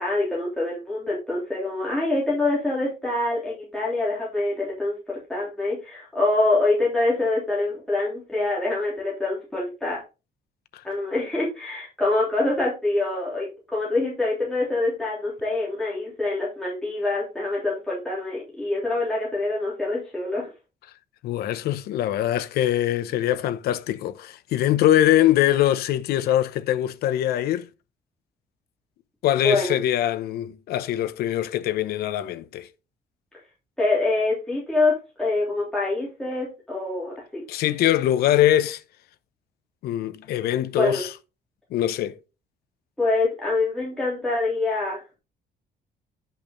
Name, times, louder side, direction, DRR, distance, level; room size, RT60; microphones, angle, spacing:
voice 1, 0.0-10.0 10.8-20.5 29.4-29.8 33.8-37.4 40.7-41.0 43.0-45.0, left 2 dB, 5° left, 3.3 m, -25 dB
voice 2, 21.2-27.7 29.2-32.7 37.5-38.8 39.8-41.1 41.7-42.2, left 12 dB, 70° left, 0.8 m, -23 dB
10.5 x 5.9 x 3.9 m
cardioid pair, 165°, 17 cm